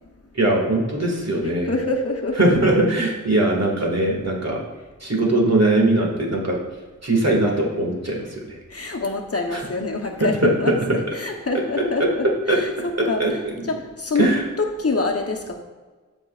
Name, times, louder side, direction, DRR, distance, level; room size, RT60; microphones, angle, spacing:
voice 1, 0.4-1.7 2.4-4.6 5.0-6.6 7.0-8.6 9.5-9.7 10.2-10.5 11.8-12.1 12.5-12.6 13.0-13.6 14.2-14.4, right 2 dB, 55° right, -1 dB, 1.9 m, -20 dB
voice 2, 1.4-2.5 8.7-13.4 13.7-15.6, left 3 dB, 45° left, 2 dB, 0.9 m, -26 dB
13.0 x 5.3 x 2.4 m, 1.3 s
wide cardioid pair, 45°, 32 cm